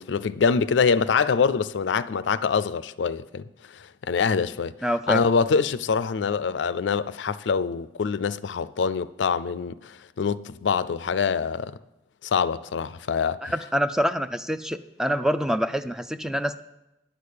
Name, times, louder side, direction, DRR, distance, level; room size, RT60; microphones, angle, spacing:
voice 1, 0.0-3.4 3.7-4.7 5.1-11.7 12.2-13.5, left 5 dB, 80° left, 0.4 m, -25 dB
voice 2, 4.8-5.2 13.4-16.6, equal, 5° right, 0.3 m, -26 dB
10.0 x 6.5 x 8.5 m
head